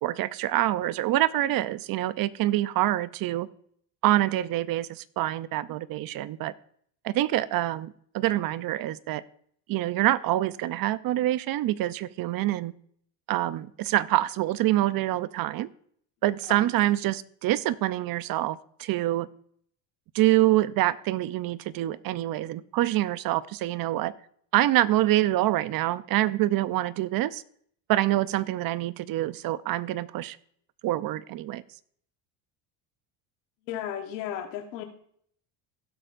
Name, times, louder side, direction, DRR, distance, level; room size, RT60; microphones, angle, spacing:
voice 1, 0.0-3.5 4.0-6.5 7.0-9.2 9.7-12.7 13.3-15.7 16.2-19.3 20.1-24.1 24.5-27.4 27.9-30.4 30.8-31.6, right 15 dB, 45° right, 16 dB, 0.6 m, -26 dB
voice 2, 33.6-34.8, left 10 dB, 90° left, 5 dB, 1.4 m, -34 dB
16.5 x 7.9 x 2.5 m, 0.62 s
supercardioid pair, 105°, 49 cm